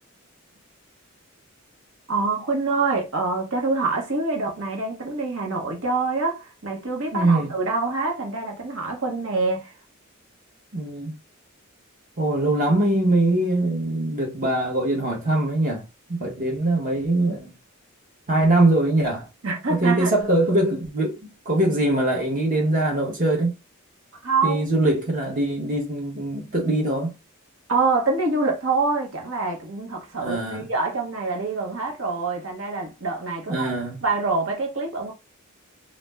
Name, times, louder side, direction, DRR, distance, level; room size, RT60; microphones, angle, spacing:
voice 1, 2.1-9.7 19.4-20.1 24.2-24.6 27.7-33.7 34.0-35.1, right 3 dB, 65° right, 0.9 m, -25 dB
voice 2, 7.1-7.5 10.7-11.1 12.2-15.8 16.1-17.5 18.3-19.3 19.7-23.5 24.4-27.1 30.2-30.7 33.5-34.0, right 1 dB, 40° right, 0.9 m, -22 dB
2.4 x 2.0 x 3.3 m
head